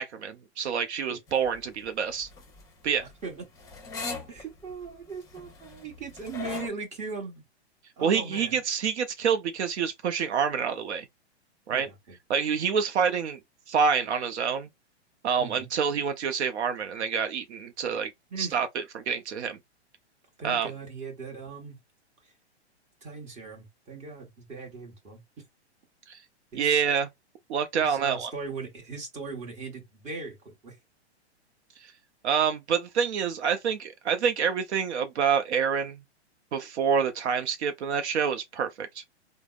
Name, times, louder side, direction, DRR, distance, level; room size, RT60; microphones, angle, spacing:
voice 1, 0.0-2.3 2.8-3.1 8.0-11.1 11.7-11.9 12.3-13.4 13.7-14.7 15.2-18.1 18.4-19.6 20.4-20.7 26.1-26.2 26.5-27.1 27.5-28.3 32.2-36.0 36.5-39.0, right 7 dB, 75° right, 0.6 m, -27 dB
sound 1, 1.3-6.7, left 4 dB, 10° left, 0.8 m, -40 dB
voice 2, 2.8-3.5 4.3-7.4 8.0-8.6 11.7-12.2 15.4-15.7 18.3-18.5 20.4-21.8 23.0-25.2 26.5-26.8 27.8-30.8, right 4 dB, 20° right, 1.2 m, -39 dB
3.3 x 2.0 x 2.4 m
hypercardioid pair, 130°, 34 cm